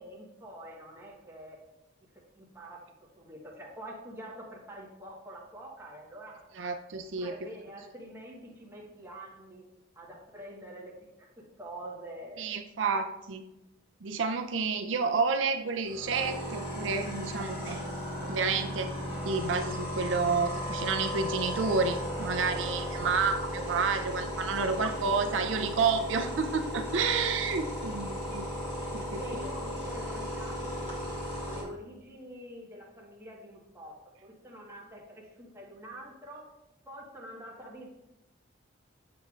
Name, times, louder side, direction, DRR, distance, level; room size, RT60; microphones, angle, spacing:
voice 1, 0.0-1.6 2.0-2.8 3.2-6.5 7.2-9.6 9.9-12.6 24.5-24.8 25.1-26.1 29.1-31.0 31.4-36.5 36.9-37.9, right 1 dB, 15° right, -3 dB, 1.3 m, -46 dB
voice 2, 6.6-7.3 12.4-13.4 14.0-17.8 18.2-18.9 19.2-28.5 28.9-29.4, right 5 dB, 80° right, 6 dB, 0.5 m, -30 dB
sound 1, 15.9-31.6, equal, 30° left, 2.2 m, -36 dB
7.6 x 6.7 x 2.4 m, 0.92 s
head